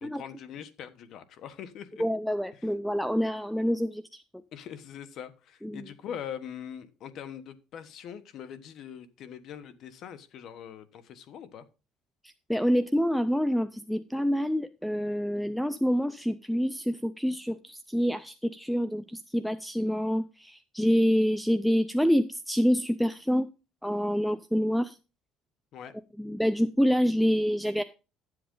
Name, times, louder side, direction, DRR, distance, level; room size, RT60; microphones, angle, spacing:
voice 1, 0.0-1.9 2.6-2.7 4.5-11.6 25.7-25.9, left 8 dB, 50° left, 12 dB, 1.2 m, -42 dB
voice 2, 2.0-4.2 5.6-5.8 12.5-23.5 23.8-25.0 26.2-27.8, equal, ahead, 13 dB, 0.4 m, -27 dB
11.5 x 7.8 x 3.8 m, 0.32 s
cardioid pair, 155°, 0 cm